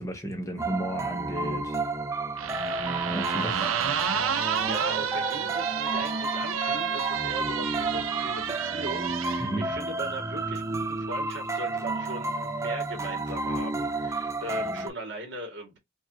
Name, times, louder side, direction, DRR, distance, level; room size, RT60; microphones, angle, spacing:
voice 1, 0.0-1.9 3.0-3.7 9.4-9.7, right 1 dB, 15° left, 0.8 m, -34 dB
sound 1, 0.6-14.9, right 2 dB, 15° right, 0.4 m, -31 dB
sound 2, 2.4-9.4, right 8 dB, 80° right, 0.5 m, -30 dB
voice 2, 4.6-15.8, right 2 dB, 55° right, 1.9 m, -39 dB
5.1 x 2.5 x 2.7 m
head